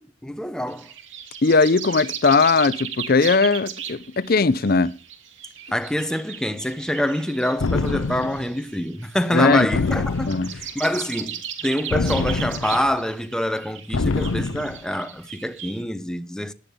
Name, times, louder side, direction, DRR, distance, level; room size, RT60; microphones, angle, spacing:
voice 1, 0.2-0.9 5.7-16.5, left 1 dB, 5° left, 0.7 m, -26 dB
sound 1, 0.7-15.8, right 9 dB, 65° right, 2.7 m, -37 dB
voice 2, 1.4-4.9 9.3-9.7 10.3-10.5, left 4 dB, 45° left, 0.6 m, -18 dB
sound 2, 7.6-8.5 9.7-10.7 11.9-12.9 13.9-14.8, left 3 dB, 85° left, 0.7 m, -25 dB
17.0 x 12.0 x 3.6 m
head